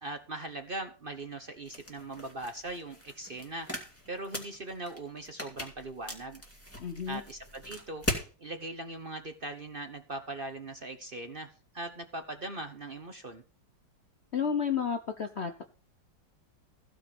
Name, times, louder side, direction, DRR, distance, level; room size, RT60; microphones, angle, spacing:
voice 1, 0.0-3.7 4.1-6.4 7.1-8.0 8.4-13.4, right 2 dB, 35° right, 7 dB, 1.0 m, -40 dB
sound 1, 1.6-8.3, left 1 dB, 5° left, 2.5 m, -40 dB
voice 2, 6.8-7.2 14.3-15.6, left 7 dB, 50° left, 7 dB, 0.9 m, -31 dB
15.0 x 5.1 x 7.0 m, 0.37 s
omnidirectional pair, 2.0 m